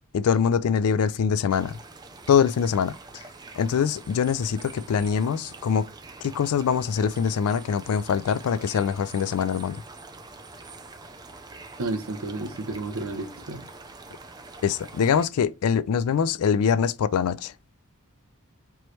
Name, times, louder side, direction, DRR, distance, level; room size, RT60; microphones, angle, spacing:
voice 1, 0.1-1.8 2.3-2.9 3.6-5.8 6.2-9.8 14.6-17.5, left 7 dB, 85° left, 0.4 m, -23 dB
sound 1, 1.5-15.3, right 3 dB, 20° right, 0.5 m, -45 dB
voice 2, 11.8-13.6, right 2 dB, 65° right, 0.8 m, -31 dB
4.5 x 3.0 x 3.2 m
head